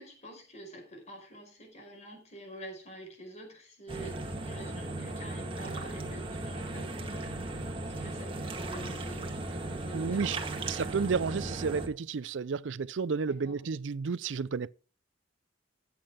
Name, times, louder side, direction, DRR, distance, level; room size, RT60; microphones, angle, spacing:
voice 1, 0.0-7.6 8.0-9.3 9.6-10.2 10.5-10.7 13.3-13.6, right 1 dB, 40° left, 4.9 m, -47 dB
sound 1, 3.9-11.9, right 2 dB, 30° right, 1.8 m, -37 dB
voice 2, 9.9-10.4 10.6-14.7, right 5 dB, 85° right, 0.5 m, -31 dB
13.0 x 8.7 x 3.6 m
head